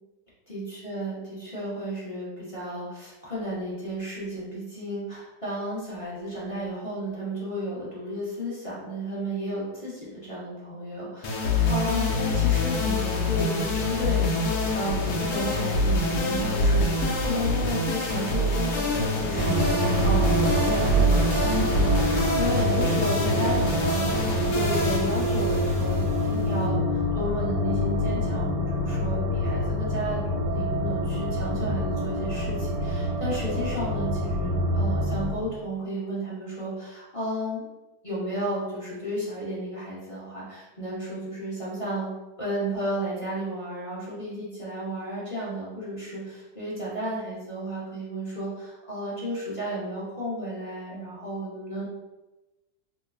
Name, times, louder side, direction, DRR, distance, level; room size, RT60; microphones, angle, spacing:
voice 1, 0.5-14.4 14.7-37.6 38.0-42.1 42.4-51.9, equal, 25° left, -9 dB, 0.8 m, -33 dB
sound 1, 11.2-26.6, left 1 dB, 70° left, 1.0 m, -25 dB
sound 2, 19.3-35.3, left 1 dB, 90° right, 1.4 m, -26 dB
3.1 x 2.2 x 3.5 m, 1.1 s
omnidirectional pair, 1.9 m